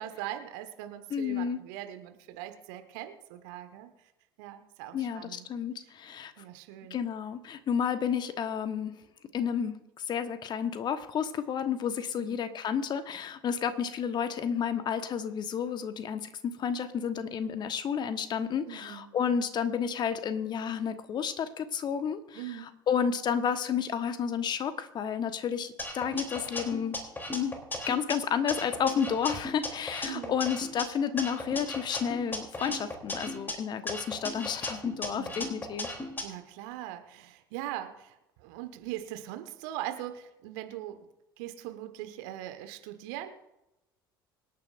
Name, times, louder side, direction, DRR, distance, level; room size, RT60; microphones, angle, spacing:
voice 1, 0.0-4.1 4.4-5.5 6.4-7.0 12.1-12.4 18.7-19.1 22.3-22.7 30.0-30.4 35.1-35.6 36.2-41.0 41.4-43.3, right 12 dB, 60° right, 8 dB, 1.4 m, -41 dB
voice 2, 1.1-1.6 4.9-6.3 6.9-8.9 9.3-27.0 27.3-27.6 27.9-35.9, left 7 dB, 40° left, 10 dB, 1.2 m, -31 dB
sound 1, 25.8-28.1 28.5-30.8 31.2-33.5 33.9-36.2, left 2 dB, 15° left, 3.2 m, -36 dB
25.5 x 9.2 x 2.6 m, 0.91 s
figure-of-eight pair, 65°, 12 cm